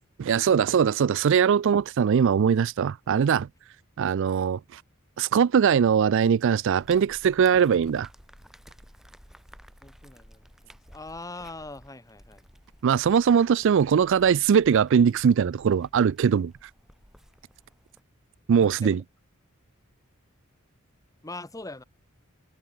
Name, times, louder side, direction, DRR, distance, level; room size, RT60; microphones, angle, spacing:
voice 1, 0.2-3.5 4.0-4.8 5.2-8.1 12.8-16.5 18.5-19.0, right 7 dB, 60° right, 0.3 m, -21 dB
sound 1, 6.8-18.0, equal, ahead, 2.7 m, -54 dB
voice 2, 9.8-12.4 18.6-19.0 21.2-21.8, left 2 dB, 15° left, 1.4 m, -42 dB
head